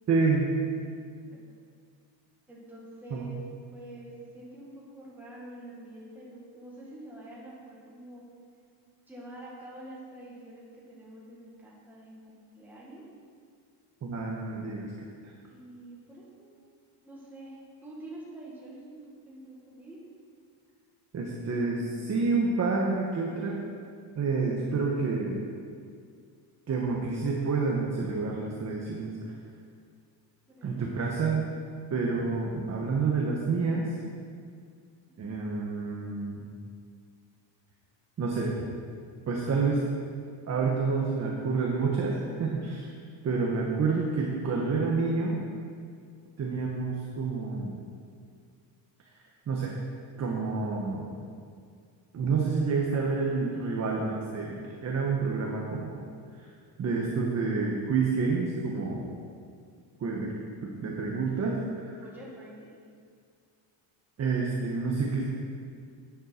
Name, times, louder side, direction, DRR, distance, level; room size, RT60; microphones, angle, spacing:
voice 1, 0.1-0.5 3.1-3.3 14.0-14.9 21.1-23.6 24.1-25.4 26.7-29.3 30.6-31.5 31.9-33.9 35.2-36.4 38.2-38.5 39.3-39.8 40.5-42.9 43.2-45.4 46.4-47.8 49.5-49.7 50.2-51.2 52.1-56.1 56.3-56.5 56.8-59.1 60.0-60.3 60.6-62.0 64.2-65.2, right 4 dB, 35° right, -1 dB, 1.2 m, -28 dB
voice 2, 2.5-3.4 3.7-8.2 9.1-13.1 15.5-16.6 17.0-19.0 19.2-20.0 30.5-30.7 35.1-35.4 62.0-62.8, right 1 dB, 5° right, -6 dB, 1.8 m, -47 dB
11.5 x 9.5 x 4.4 m, 2.2 s
cardioid pair, 165°, 47 cm